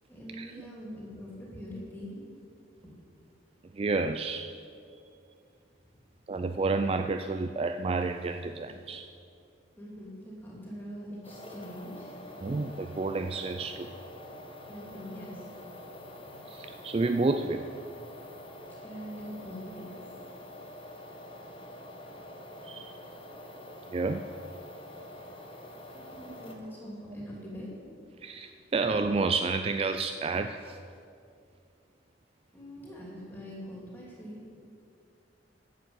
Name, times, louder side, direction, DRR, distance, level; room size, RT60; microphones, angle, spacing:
voice 1, 0.1-2.2 2.8-2.9 9.8-12.1 14.7-15.5 18.8-19.9 25.9-27.7 32.5-34.4, equal, 10° left, -4 dB, 2.9 m, -43 dB
voice 2, 3.7-4.6 4.9-5.0 6.3-9.1 12.4-14.0 16.5-17.7 22.6-23.0 23.9-24.3 28.2-30.8, right 3 dB, 30° right, 8 dB, 0.3 m, -30 dB
sound 1, 11.2-26.6, left 1 dB, 30° left, 1.2 m, -46 dB
11.0 x 7.5 x 8.1 m, 2.5 s
head